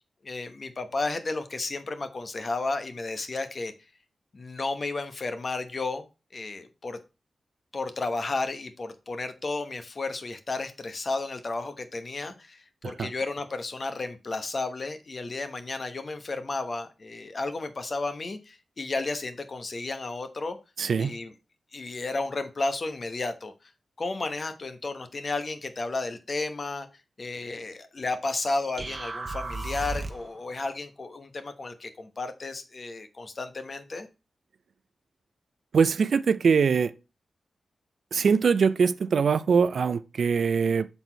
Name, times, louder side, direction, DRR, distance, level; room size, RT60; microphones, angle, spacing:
voice 1, 0.2-3.7 4.3-6.0 6.3-7.0 7.7-20.6 21.0-21.3 21.7-23.5 24.0-26.9 27.2-34.1, left 3 dB, 55° left, 1.0 m, -33 dB
voice 2, 20.8-21.1 35.7-36.9 38.1-40.9, right 5 dB, 75° right, 0.4 m, -23 dB
sound 1, 28.8-30.4, right 3 dB, 45° right, 0.9 m, -34 dB
6.0 x 4.1 x 4.5 m
supercardioid pair, 40°, 0 cm